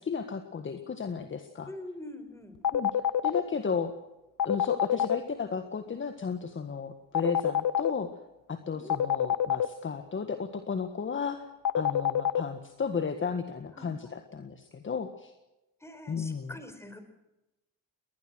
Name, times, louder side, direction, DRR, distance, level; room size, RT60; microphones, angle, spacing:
voice 1, 0.0-1.7 2.7-3.9 4.4-8.1 8.5-11.4 11.7-15.3 16.1-16.5, left 6 dB, 35° left, 7 dB, 1.7 m, -34 dB
voice 2, 1.6-2.6 8.7-9.0 13.8-14.2 15.8-17.0, left 1 dB, 5° left, 8 dB, 4.7 m, -44 dB
sound 1, 2.6-3.4 4.4-5.2 7.1-7.9 8.9-9.7 11.6-12.4, left 9 dB, 60° left, 1.1 m, -25 dB
21.0 x 20.0 x 6.4 m, 0.96 s
cardioid pair, 95°, 35 cm